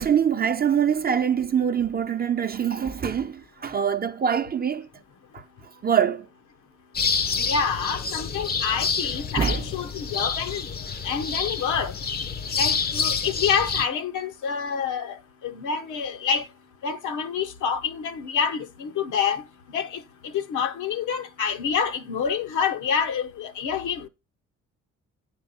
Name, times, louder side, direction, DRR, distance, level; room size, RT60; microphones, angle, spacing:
voice 1, 0.0-4.9 5.3-5.4 5.8-6.3 9.4-9.7, right 8 dB, 30° right, 0.7 m, -24 dB
sound 1, 6.9-13.8, left 5 dB, 30° left, 0.7 m, -28 dB
voice 2, 7.4-10.7 11.0-11.9 12.5-15.2 15.4-16.5 16.8-19.4 19.7-24.1, left 6 dB, 80° left, 1.1 m, -27 dB
9.3 x 4.6 x 5.4 m
cardioid pair, 90°, 30 cm